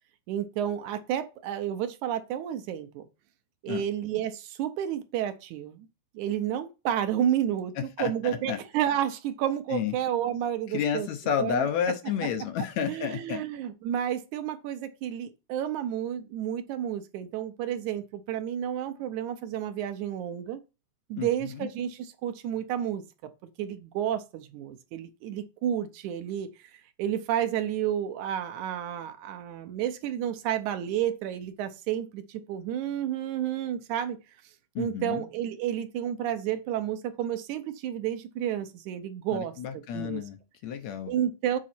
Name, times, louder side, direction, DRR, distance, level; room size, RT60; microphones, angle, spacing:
voice 1, 0.3-3.1 3.6-5.9 6.1-7.7 8.0-11.1 11.4-11.7 12.9-20.6 21.1-23.0 23.6-34.2 34.8-39.5 39.9-40.2 41.1-41.6, right 10 dB, 80° right, 2.2 m, -31 dB
voice 2, 8.0-8.6 9.7-9.9 10.7-13.4 21.2-21.7 34.8-35.2 39.3-41.1, left 8 dB, 70° left, 2.0 m, -31 dB
7.5 x 4.0 x 4.3 m
omnidirectional pair, 3.6 m